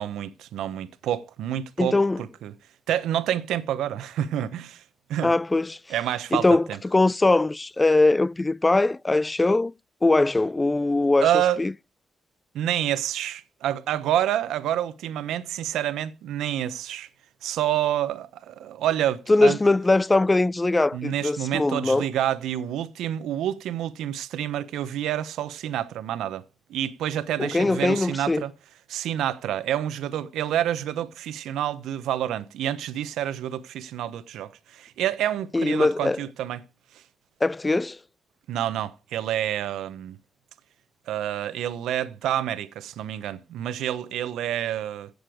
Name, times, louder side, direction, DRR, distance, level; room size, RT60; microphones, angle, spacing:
voice 1, 0.0-2.5 2.9-4.8 5.1-5.3 5.9-6.8 11.2-11.6 12.5-17.1 17.4-19.6 20.9-26.4 26.7-28.5 28.9-36.6 38.5-40.2 41.1-45.1, right 11 dB, 85° right, 1.0 m, -28 dB
voice 2, 1.8-2.2 5.2-5.8 6.3-9.7 10.0-11.3 11.6-11.7 19.3-22.1 27.4-28.4 35.5-36.2 37.4-38.0, left 2 dB, 25° left, 0.5 m, -21 dB
16.0 x 6.7 x 5.0 m
supercardioid pair, 55°, 0 cm